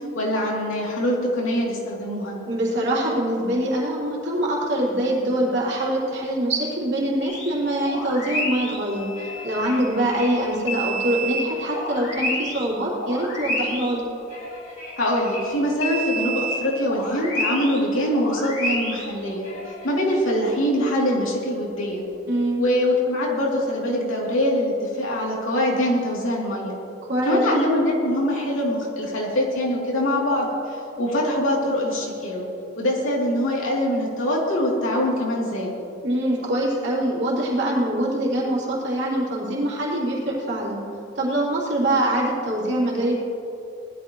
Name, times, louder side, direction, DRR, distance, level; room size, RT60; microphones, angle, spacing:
voice 1, 0.1-2.4 15.0-19.5 19.8-22.1 22.6-26.8 27.2-32.4 32.8-35.7, left 1 dB, 80° left, -4 dB, 3.0 m, -23 dB
voice 2, 2.5-14.0 22.3-22.6 27.1-27.4 36.0-40.8 41.1-43.1, right 1 dB, 55° right, -5 dB, 3.4 m, -24 dB
sound 1, 7.2-7.5 7.8-12.7 12.9-15.5 15.8-17.8 18.1-19.9, equal, 55° left, 3.5 m, -30 dB
19.5 x 12.5 x 3.1 m, 2.8 s
head